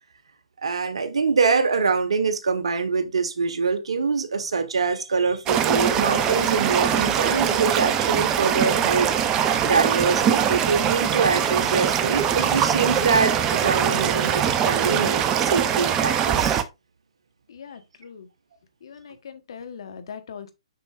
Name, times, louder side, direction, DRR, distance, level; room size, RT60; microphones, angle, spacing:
voice 1, 0.6-16.6, right 5 dB, 65° right, 1.2 m, -24 dB
sound 1, 5.5-16.6, right 8 dB, 20° right, 0.6 m, -22 dB
voice 2, 17.5-18.3 18.8-20.5, left 6 dB, 55° left, 1.2 m, -40 dB
6.7 x 6.0 x 2.5 m
figure-of-eight pair, 135°, 3 cm